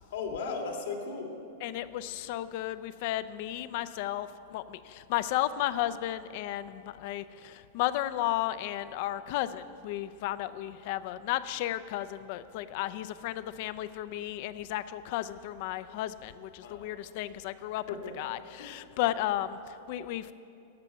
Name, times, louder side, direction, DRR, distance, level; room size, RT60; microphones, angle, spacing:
voice 1, 0.1-1.4 16.6-17.0 17.9-18.1 18.6-18.7, left 4 dB, 75° left, 2 dB, 2.2 m, -36 dB
voice 2, 1.6-17.8 18.2-20.3, left 13 dB, 50° left, 14 dB, 0.5 m, -34 dB
14.5 x 5.9 x 9.1 m, 2.7 s
supercardioid pair, 155°, 0 cm